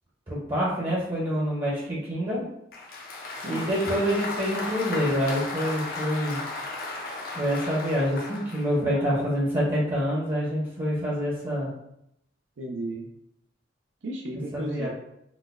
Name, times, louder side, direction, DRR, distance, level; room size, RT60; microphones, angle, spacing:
voice 1, 0.3-2.4 3.4-6.4 7.4-11.7 14.5-14.9, equal, 30° right, -6 dB, 0.7 m, -26 dB
Applause, 2.7-8.7, left 2 dB, 55° left, 0.6 m, -35 dB
voice 2, 3.4-3.7 8.9-9.3 12.6-13.1 14.0-14.9, right 1 dB, 75° right, 1 dB, 0.5 m, -35 dB
3.9 x 2.1 x 2.4 m, 0.79 s
head